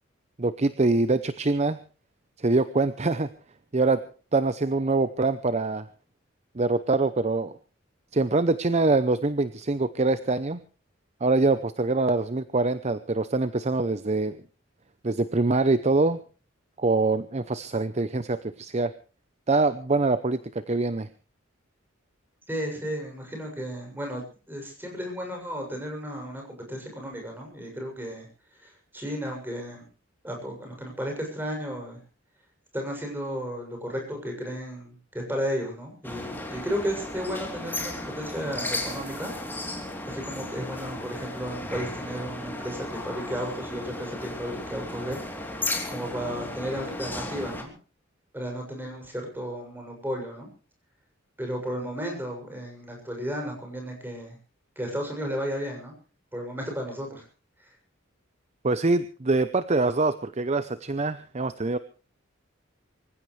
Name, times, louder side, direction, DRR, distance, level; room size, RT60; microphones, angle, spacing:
voice 1, 0.4-1.8 2.4-3.3 3.7-4.0 4.3-5.9 6.5-7.6 8.1-10.6 11.2-14.4 15.0-16.2 16.8-18.9 19.5-21.1 58.6-61.8, right 3 dB, 35° right, 13 dB, 0.7 m, -24 dB
voice 2, 22.5-24.2 24.5-29.9 30.2-32.0 32.7-39.3 40.1-45.2 45.9-47.7 48.3-50.5 51.4-54.4 54.8-55.9 56.3-57.3 57.6-57.7, equal, 10° right, 1 dB, 7.0 m, -34 dB
sound 1, 36.0-47.6, left 1 dB, 10° left, 3.2 m, -35 dB
25.0 x 15.5 x 3.3 m, 0.36 s
head